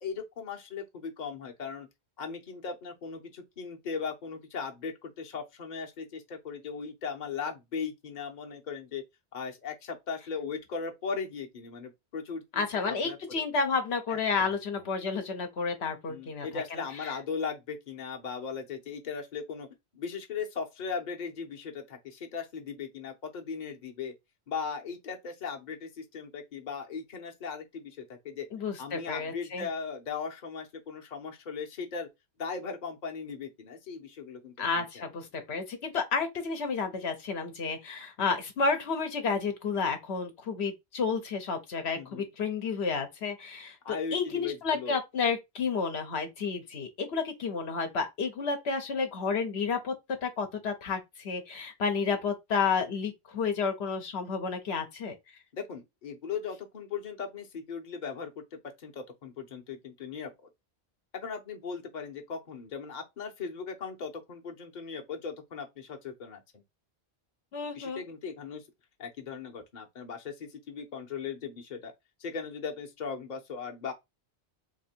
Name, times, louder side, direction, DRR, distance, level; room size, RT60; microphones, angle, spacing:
voice 1, 0.0-1.9 2.2-9.0 9.3-13.4 14.1-14.9 16.1-19.7 19.9-24.1 24.5-28.5 28.8-32.1 32.4-35.1 42.0-42.3 43.8-45.0 55.5-58.4 58.8-60.3 61.1-66.6 67.7-68.6 69.0-71.9 72.2-73.9, left 5 dB, 45° left, 0.9 m, -38 dB
voice 2, 12.6-17.1 28.5-29.7 34.6-49.9 50.2-55.1 67.5-68.0, left 5 dB, 75° left, 1.1 m, -31 dB
2.9 x 2.7 x 4.3 m
omnidirectional pair, 1.1 m